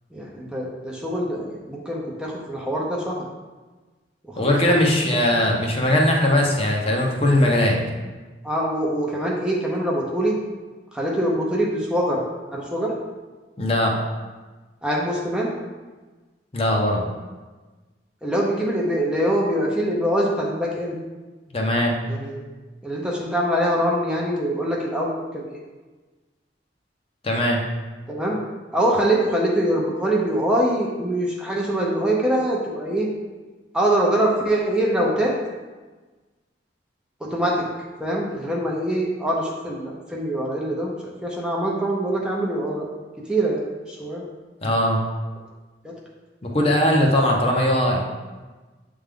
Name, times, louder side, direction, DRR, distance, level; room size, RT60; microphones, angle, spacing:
voice 1, 0.1-3.2 4.2-4.9 8.4-10.4 10.9-12.2 12.5-13.0 14.8-15.5 18.2-21.0 22.1-22.5 22.8-25.6 28.1-28.4 28.7-33.1 33.7-35.3 37.2-37.7 38.0-40.9 41.2-42.9 43.3-44.2 45.8-45.9, right 1 dB, 5° right, -3 dB, 0.7 m, -24 dB
voice 2, 4.4-7.8 13.6-14.0 16.5-17.0 21.5-22.0 27.2-27.6 44.6-45.0 46.4-48.1, left 1 dB, 30° left, 0 dB, 0.8 m, -20 dB
7.9 x 3.5 x 3.7 m, 1.3 s
head